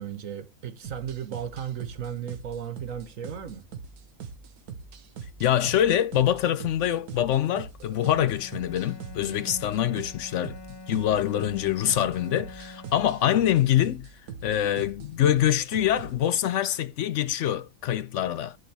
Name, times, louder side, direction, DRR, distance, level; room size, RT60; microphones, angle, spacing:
voice 1, 0.0-3.7, right 9 dB, 65° right, 1.3 m, -35 dB
sound 1, 0.8-16.2, right 6 dB, 85° right, 1.6 m, -42 dB
voice 2, 5.4-10.6 10.9-14.1 14.4-18.6, left 11 dB, 65° left, 0.8 m, -25 dB
Bowed string instrument, 8.0-13.8, left 3 dB, 30° left, 0.4 m, -45 dB
11.0 x 4.4 x 3.3 m
omnidirectional pair, 1.6 m